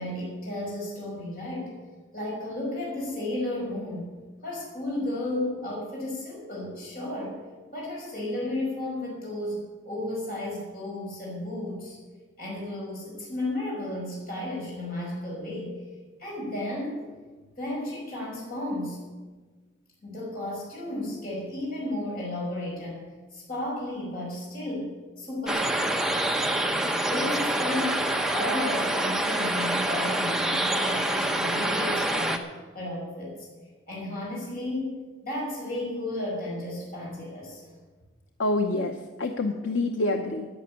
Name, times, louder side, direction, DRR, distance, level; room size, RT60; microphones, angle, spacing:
voice 1, 0.0-1.8 2.1-4.1 4.4-7.4 7.7-12.0 12.4-15.8 16.2-17.0 17.6-19.0 20.0-25.9 27.1-32.5 32.7-33.5 33.9-35.0 35.2-37.6, left 1 dB, 45° left, -4 dB, 5.8 m, -33 dB
sound 1, 25.5-32.4, right 1 dB, 5° right, 0.9 m, -26 dB
voice 2, 38.4-40.5, left 2 dB, 85° left, 4 dB, 0.9 m, -27 dB
11.5 x 9.7 x 8.5 m, 1.3 s
head